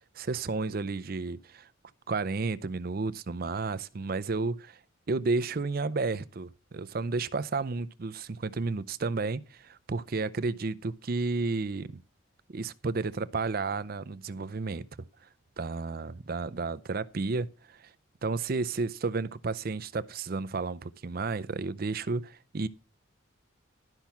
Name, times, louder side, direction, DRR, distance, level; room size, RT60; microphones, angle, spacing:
voice 1, 0.2-1.7 2.1-4.8 5.1-12.0 12.5-14.9 15.6-17.9 18.2-22.7, right 3 dB, 45° right, 0.5 m, -32 dB
12.5 x 5.7 x 5.8 m
head